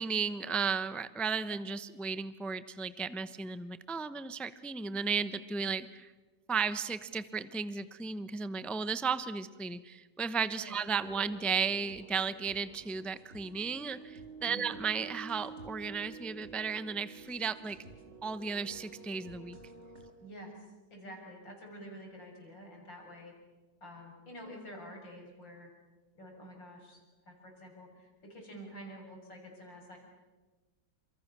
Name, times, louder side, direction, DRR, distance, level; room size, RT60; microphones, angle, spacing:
voice 1, 0.0-6.1 6.5-17.8 18.2-19.6, right 5 dB, ahead, 13 dB, 0.5 m, -34 dB
sound 1, 11.0-20.1, right 4 dB, 35° right, 4.0 m, -50 dB
voice 2, 20.2-20.5 20.9-23.3 23.8-25.7 26.1-30.0, equal, 85° left, 1 dB, 7.7 m, -48 dB
29.5 x 28.0 x 6.9 m, 1.2 s
omnidirectional pair, 2.0 m